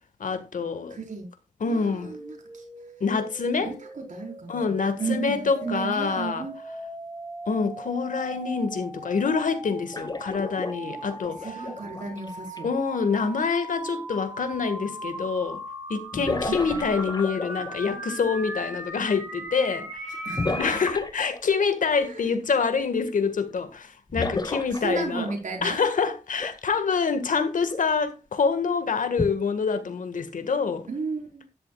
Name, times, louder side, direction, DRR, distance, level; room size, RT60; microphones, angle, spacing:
voice 1, 0.2-1.0 1.6-2.2 3.0-3.7 4.5-6.5 7.5-11.5 12.6-15.6 15.9-20.2 20.6-25.3 25.6-30.9, left 5 dB, 85° left, 1.7 m, -26 dB
voice 2, 0.9-1.3 1.7-2.7 3.6-6.5 11.2-12.7 16.4-16.8 20.2-20.8 22.0-22.2 24.7-25.8 30.9-31.5, right 4 dB, 70° right, 4.4 m, -34 dB
sound 1, 2.0-20.9, right 1 dB, 15° right, 3.6 m, -39 dB
sound 2, 9.9-12.6 14.5-14.6 16.1-17.9 20.4-21.7 24.1-25.6 26.4-26.5 27.7-27.9 29.2-29.3, left 3 dB, 30° left, 1.3 m, -32 dB
12.5 x 11.0 x 2.4 m
wide cardioid pair, 95°, 13 cm